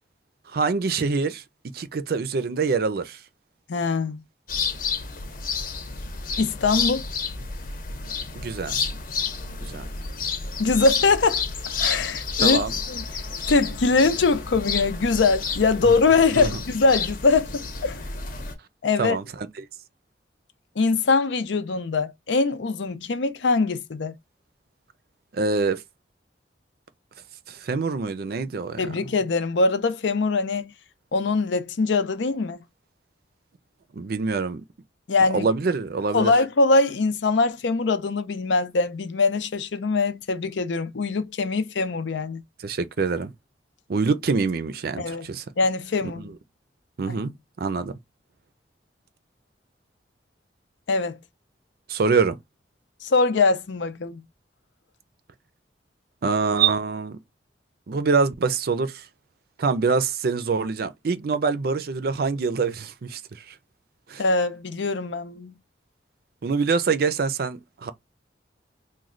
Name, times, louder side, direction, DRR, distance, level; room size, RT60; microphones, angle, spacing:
voice 1, 0.5-1.4 1.7-3.2 8.4-8.8 9.6-9.9 12.4-12.8 15.8-15.9 16.4-16.5 19.0-19.7 25.3-25.8 27.5-28.8 33.9-34.6 35.2-36.3 42.6-43.3 43.9-45.4 46.2-46.3 47.0-47.9 51.9-52.4 56.2-57.2 57.9-59.0 59.6-63.5 64.1-64.2 66.4-67.9, right 4 dB, 55° right, 0.4 m, -25 dB
voice 2, 3.7-4.2 6.4-7.0 10.6-11.4 11.8-12.6 12.9-13.0 13.5-18.0 18.8-19.2 20.8-24.1 28.8-30.7 31.1-32.6 35.1-35.5 36.1-42.4 45.0-45.3 45.6-46.2 47.1-47.2 50.9-51.2 53.0-54.2 64.2-65.5, left 3 dB, 85° left, 0.6 m, -22 dB
sound 1, 4.5-18.5, left 5 dB, 50° left, 0.8 m, -30 dB
3.1 x 2.2 x 3.7 m
head